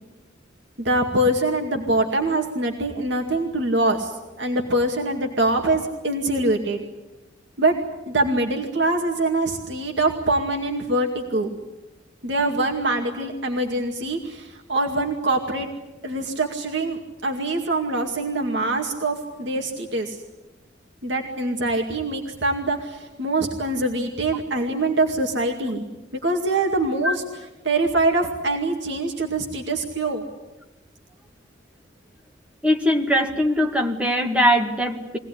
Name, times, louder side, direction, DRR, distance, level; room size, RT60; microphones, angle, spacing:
voice 1, 0.8-4.1 4.4-6.8 7.6-7.7 8.1-11.5 12.2-15.7 16.0-20.2 21.0-25.8 26.2-27.2 27.6-30.2, right 2 dB, 65° right, 2 dB, 2.3 m, -24 dB
voice 2, 32.6-35.2, equal, 5° right, 2 dB, 2.1 m, -21 dB
23.5 x 18.0 x 10.0 m, 1.1 s
head